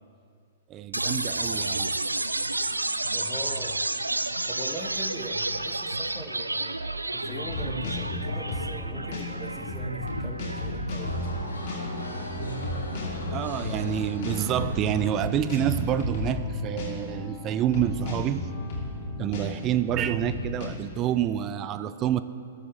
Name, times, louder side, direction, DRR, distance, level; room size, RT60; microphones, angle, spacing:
voice 1, 0.7-2.0 13.3-18.4 19.2-22.2, right 11 dB, 30° right, 13 dB, 0.4 m, -28 dB
sound 1, 0.9-14.9, right 2 dB, 85° right, 0.5 m, -32 dB
voice 2, 3.1-3.8 4.5-6.8 7.1-11.2, equal, ahead, 2 dB, 1.1 m, -41 dB
sound 2, 7.2-20.7, left 2 dB, 45° left, 2.9 m, -34 dB
sound 3, 11.0-16.5, left 1 dB, 80° left, 3.8 m, -41 dB
20.0 x 11.5 x 3.1 m, 2.4 s
figure-of-eight pair, 110°, 0 cm